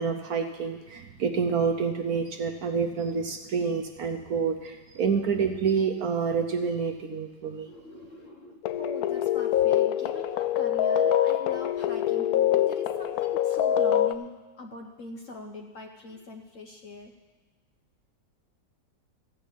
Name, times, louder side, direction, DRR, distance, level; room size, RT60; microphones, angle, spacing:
voice 1, 0.0-7.7, right 5 dB, 60° right, 5 dB, 1.1 m, -28 dB
voice 2, 7.6-17.1, left 1 dB, 55° left, 3 dB, 1.0 m, -43 dB
sound 1, 8.6-14.1, left 10 dB, 75° left, 0.9 m, -25 dB
14.5 x 5.2 x 8.2 m, 1.3 s
omnidirectional pair, 2.0 m